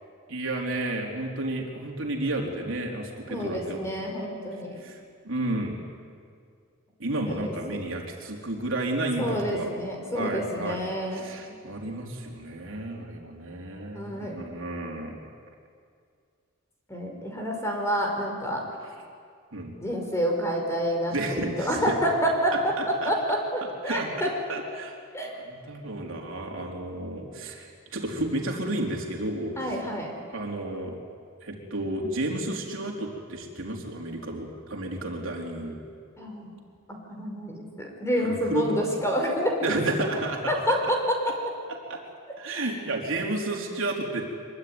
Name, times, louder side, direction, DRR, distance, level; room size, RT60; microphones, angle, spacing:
voice 1, 0.3-3.9 4.8-5.8 7.0-9.7 10.1-10.8 11.1-15.2 19.5-19.8 21.1-21.9 22.8-23.1 23.8-25.0 25.2-29.8 30.3-31.0 31.4-35.8 38.2-38.7 39.6-40.5 41.9-42.0 42.4-44.2, right 2 dB, 65° right, 0 dB, 4.0 m, -32 dB
voice 2, 3.3-4.8 7.3-7.8 9.2-11.2 13.9-14.4 16.9-18.6 19.8-22.7 23.1-24.3 25.1-25.3 29.6-30.1 36.2-36.5 36.9-39.5 40.5-41.2 42.6-42.7, equal, 15° left, 1 dB, 5.1 m, -28 dB
24.5 x 23.5 x 9.8 m, 2.2 s
head